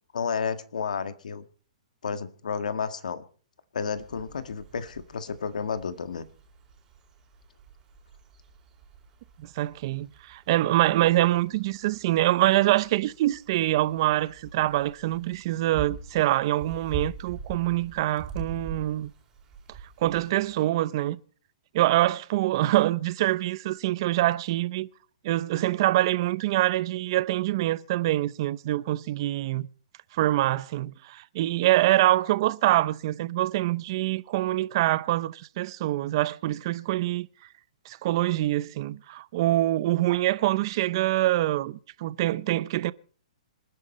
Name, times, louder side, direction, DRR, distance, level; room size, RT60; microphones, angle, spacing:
voice 1, 0.1-1.4 2.0-3.2 3.7-6.3, left 6 dB, 85° left, 1.7 m, -31 dB
sound 1, 4.0-20.6, right 4 dB, 15° right, 3.9 m, -44 dB
voice 2, 9.4-19.1 20.0-21.2 21.7-24.9 25.2-29.7 30.1-37.3 37.9-42.9, right 15 dB, 35° right, 0.7 m, -25 dB
26.5 x 10.5 x 4.3 m
hypercardioid pair, 165°, 4 cm